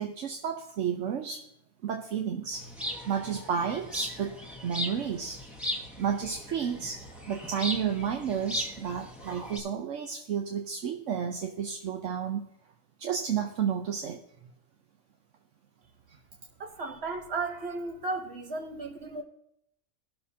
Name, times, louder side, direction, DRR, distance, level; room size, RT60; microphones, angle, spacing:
voice 1, 0.0-1.5 1.8-2.7 3.1-5.4 6.0-12.4 13.0-14.2, right 7 dB, 80° right, 1.1 m, -31 dB
sound 1, 2.5-9.6, left 1 dB, ahead, 1.2 m, -38 dB
voice 2, 16.6-19.2, right 3 dB, 60° right, 1.2 m, -35 dB
18.5 x 6.7 x 2.8 m
omnidirectional pair, 1.3 m